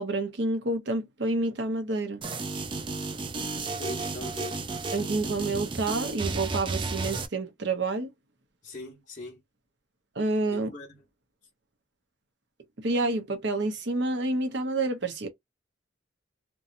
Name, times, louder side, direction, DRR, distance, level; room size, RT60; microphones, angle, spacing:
voice 1, 0.0-2.2 4.9-8.1 10.2-10.7 12.8-15.3, right 2 dB, 60° right, 0.7 m, -28 dB
sound 1, 2.2-7.3, right 3 dB, 25° right, 0.3 m, -33 dB
voice 2, 3.8-4.7 8.6-9.4 10.5-11.0, left 2 dB, 40° left, 1.0 m, -40 dB
2.7 x 2.2 x 2.5 m
head